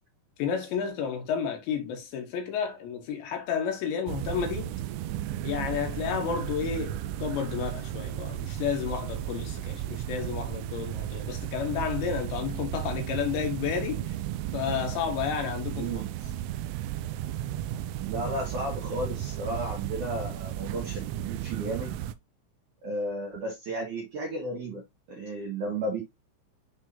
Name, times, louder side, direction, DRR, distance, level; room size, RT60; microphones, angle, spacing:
voice 1, 0.4-4.8 5.4-14.2 14.5-15.9, left 7 dB, 70° left, 3.4 m, -31 dB
sound 1, 4.1-22.1, right 12 dB, 85° right, 3.0 m, -34 dB
voice 2, 15.7-16.1 18.0-22.0 22.8-24.8 25.1-26.0, right 1 dB, 60° right, 2.1 m, -33 dB
11.0 x 3.6 x 2.7 m
omnidirectional pair, 5.7 m